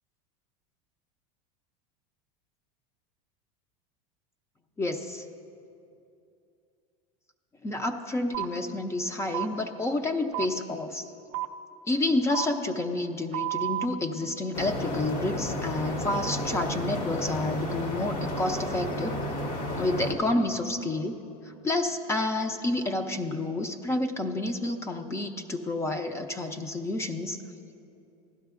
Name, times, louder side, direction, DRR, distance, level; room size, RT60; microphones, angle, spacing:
voice 1, 4.8-5.2 7.6-11.1 11.9-19.2 19.8-21.2 21.6-27.4, left 2 dB, 15° left, 6 dB, 0.5 m, -29 dB
sound 1, 8.3-8.5 9.3-9.5 10.3-10.5 11.3-11.5 12.3-12.5 13.3-13.9, right 16 dB, 45° right, 0.4 m, -30 dB
sound 2, 14.5-20.1, left 1 dB, 65° left, 1.5 m, -32 dB
15.5 x 11.5 x 2.5 m, 2.6 s
supercardioid pair, 125°, 18 cm